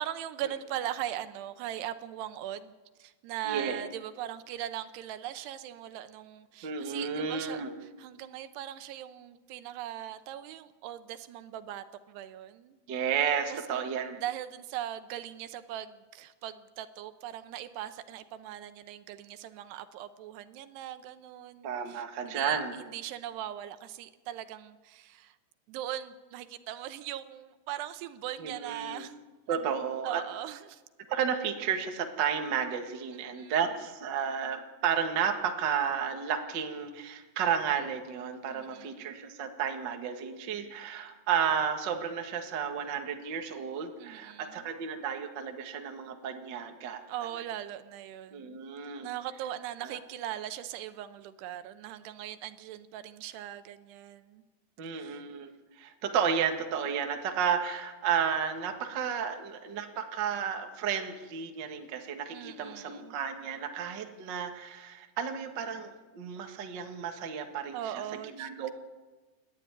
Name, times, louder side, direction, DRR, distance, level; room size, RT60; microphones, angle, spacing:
voice 1, 0.0-2.7 3.0-7.6 8.0-12.8 13.5-13.6 14.2-25.4 25.7-29.2 29.5-29.7 30.0-30.8 33.3-33.5 38.5-39.1 44.0-44.7 47.1-48.6 49.0-54.4 54.8-55.2 62.3-63.1 67.7-68.7, right 12 dB, 80° right, 11 dB, 2.9 m, -40 dB
voice 2, 3.4-3.8 6.6-7.7 12.9-14.2 21.6-22.7 28.4-29.1 29.5-30.2 31.1-47.0 48.3-49.1 49.8-50.0 54.8-55.5 55.8-67.8 68.4-68.7, right 7 dB, 50° right, 4 dB, 1.3 m, -32 dB
28.5 x 11.5 x 9.6 m, 1.3 s
omnidirectional pair, 4.9 m